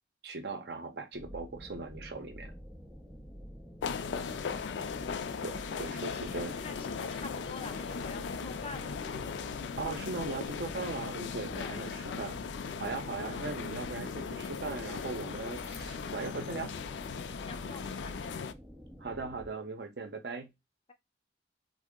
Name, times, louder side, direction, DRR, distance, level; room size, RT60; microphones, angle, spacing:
voice 1, 0.2-2.5 5.4-6.5 9.8-12.4 12.8-16.7 19.0-20.5, right 3 dB, 65° right, 0.6 m, -39 dB
sound 1, 1.1-19.5, equal, 5° right, 0.8 m, -48 dB
sound 2, 3.8-18.5, left 6 dB, 85° left, 0.3 m, -38 dB
voice 2, 6.3-8.9 11.5-11.8 13.3-13.5 17.4-18.3, left 3 dB, 30° left, 0.5 m, -46 dB
3.6 x 2.0 x 3.6 m
head